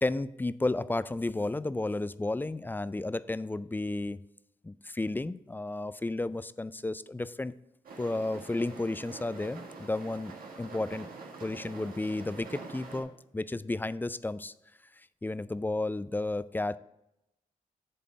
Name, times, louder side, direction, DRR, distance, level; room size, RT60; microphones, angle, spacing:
voice 1, 0.0-4.2 4.6-7.5 8.0-11.1 11.4-14.5 15.2-16.8, left 2 dB, 15° left, 16 dB, 0.3 m, -32 dB
sound 1, 7.8-13.0, right 4 dB, 70° right, 1.6 m, -45 dB
8.5 x 3.4 x 6.1 m, 0.86 s
supercardioid pair, 50°, 15 cm